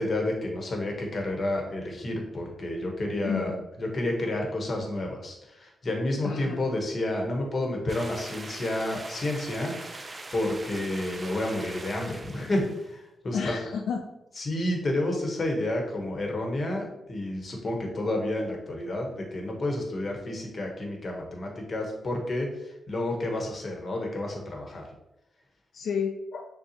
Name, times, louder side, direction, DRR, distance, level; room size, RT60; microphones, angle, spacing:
voice 1, 0.0-3.5 3.8-10.0 10.3-13.5 14.4-24.8, left 1 dB, 45° left, 1 dB, 1.1 m, -30 dB
voice 2, 3.2-3.6 6.2-6.6 13.3-14.0 25.7-26.4, left 6 dB, 80° left, 2 dB, 0.3 m, -30 dB
sound 1, 7.9-12.9, right 2 dB, 30° right, 0.5 m, -42 dB
6.6 x 2.3 x 2.8 m, 0.88 s
cardioid pair, 75°, 0 cm